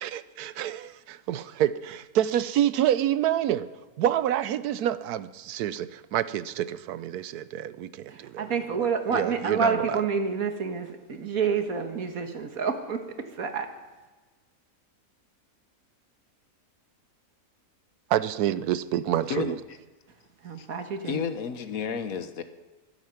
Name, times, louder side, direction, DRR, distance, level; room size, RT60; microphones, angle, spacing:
voice 1, 0.0-3.7 4.0-8.5 8.7-8.9 9.1-10.0 18.1-19.6, right 11 dB, 85° right, 15 dB, 1.2 m, -27 dB
voice 2, 8.1-13.7 20.4-21.2, right 5 dB, 70° right, 6 dB, 1.8 m, -28 dB
voice 3, 21.0-22.4, left 7 dB, 70° left, 10 dB, 1.3 m, -31 dB
22.5 x 8.2 x 5.8 m, 1.3 s
omnidirectional pair, 1.6 m